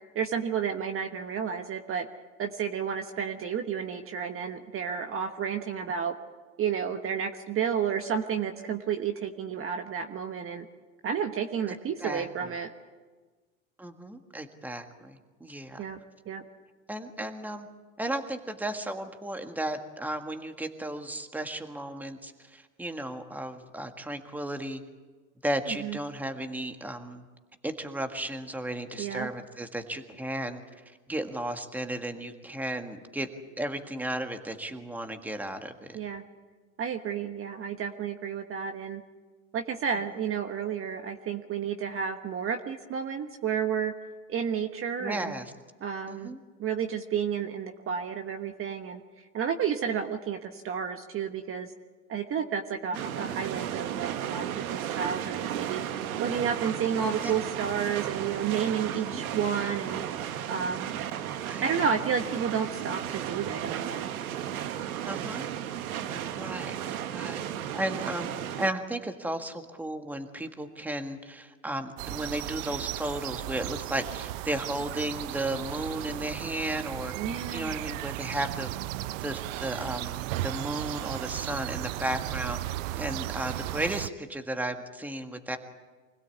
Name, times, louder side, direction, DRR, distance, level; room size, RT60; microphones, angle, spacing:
voice 1, 0.1-2.1 2.4-6.1 6.6-10.7 11.0-12.7 15.8-16.0 16.3-16.4 25.7-26.0 29.0-29.3 35.9-36.2 36.8-39.0 39.5-43.9 44.3-45.3 45.8-49.0 49.3-51.7 52.1-60.0 60.5-61.0 61.6-64.1 77.2-77.8, right 7 dB, 30° right, 6 dB, 1.3 m, -31 dB
voice 2, 13.8-15.8 16.9-17.7 18.0-24.8 25.4-27.2 27.6-33.3 33.6-36.0 45.0-45.5 46.1-46.4 52.9-53.0 57.2-57.3 58.9-59.2 61.4-61.6 65.0-65.5 66.1-67.4 67.7-68.3 68.6-77.1 77.5-78.7 79.2-82.6 82.9-85.6, right 1 dB, 5° right, 6 dB, 1.7 m, -34 dB
sound 1, 52.9-68.7, right 10 dB, 90° right, 1.3 m, -34 dB
sound 2, 72.0-84.1, right 16 dB, 65° right, 0.7 m, -35 dB
25.0 x 16.5 x 8.4 m, 1.4 s
supercardioid pair, 115°, 41 cm